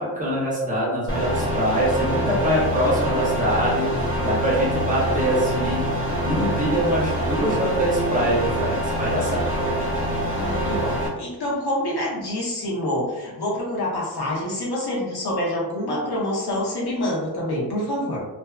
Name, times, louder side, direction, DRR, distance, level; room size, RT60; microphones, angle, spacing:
voice 1, 0.0-9.5, equal, 20° right, -6 dB, 0.7 m, -24 dB
sound 1, 1.1-11.1, equal, 30° left, 0.8 m, -25 dB
voice 2, 10.3-18.2, left 1 dB, 75° left, -4 dB, 0.9 m, -26 dB
2.5 x 2.2 x 2.3 m, 1.1 s
wide cardioid pair, 180°, 39 cm